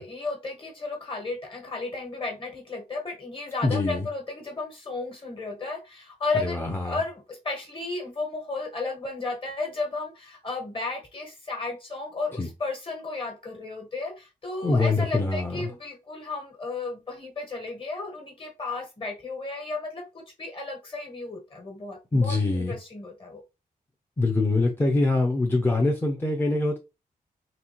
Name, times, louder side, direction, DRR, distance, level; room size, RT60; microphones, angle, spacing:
voice 1, 0.0-23.4, left 3 dB, 35° left, 3 dB, 1.5 m, -34 dB
voice 2, 3.6-4.1 6.4-7.0 12.4-12.5 14.6-15.7 22.1-22.7 24.2-26.8, left 2 dB, 15° left, 1 dB, 0.6 m, -24 dB
4.0 x 3.3 x 3.0 m, 0.26 s
wide cardioid pair, 135°, 15 cm